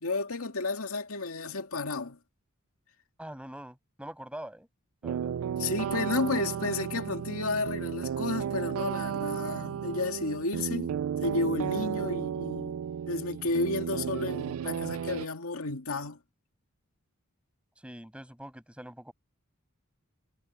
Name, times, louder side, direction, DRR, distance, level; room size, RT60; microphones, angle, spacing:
voice 1, 0.0-2.2 5.6-10.9 11.2-12.7 13.1-16.2, left 3 dB, 90° left, 2.2 m, -32 dB
voice 2, 3.2-4.7 5.0-5.3 17.8-19.1, right 1 dB, 5° right, 5.9 m, -44 dB
sound 1, 5.0-15.3, right 8 dB, 75° right, 0.3 m, -33 dB
head